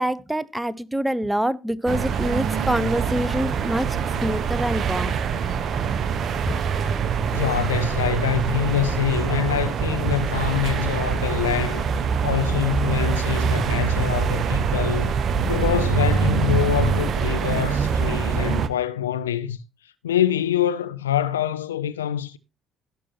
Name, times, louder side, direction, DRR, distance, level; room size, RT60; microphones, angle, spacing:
voice 1, 0.0-5.2 6.5-6.6, right 1 dB, 10° right, 0.7 m, -25 dB
sound 1, 1.9-18.7, right 6 dB, 50° right, 0.9 m, -24 dB
voice 2, 7.3-11.8 12.2-15.1 15.4-19.6 20.0-22.4, left 11 dB, 85° left, 0.5 m, -25 dB
17.0 x 6.3 x 2.9 m
hypercardioid pair, 50°, 0 cm